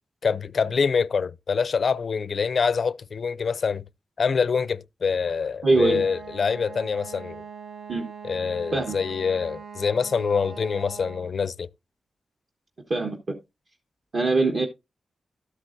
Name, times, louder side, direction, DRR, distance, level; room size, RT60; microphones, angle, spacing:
voice 1, 0.2-3.8 4.2-7.4 8.2-11.7, left 5 dB, 60° left, 0.4 m, -25 dB
voice 2, 5.6-6.0 7.9-8.1 8.7-9.0 12.9-13.2 14.1-14.7, right 3 dB, 50° right, 1.3 m, -22 dB
Wind instrument woodwind instrument, 5.7-11.4, right 5 dB, 85° right, 1.1 m, -42 dB
12.5 x 8.0 x 2.6 m
wide cardioid pair, 115°, 0 cm